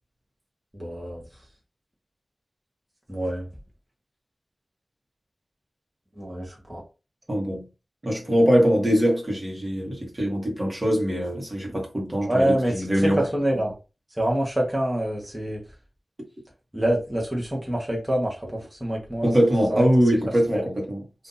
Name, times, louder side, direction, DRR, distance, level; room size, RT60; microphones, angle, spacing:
voice 1, 0.7-1.2 3.1-3.5 6.2-6.8 12.3-13.7 14.2-15.6 16.7-19.3 19.7-19.8 20.5-20.6, right 1 dB, 10° right, 1.1 m, -26 dB
voice 2, 7.3-7.7 8.0-13.2 19.2-21.0, equal, 30° right, 1.3 m, -22 dB
2.7 x 2.6 x 3.8 m
wide cardioid pair, 75°, 0 cm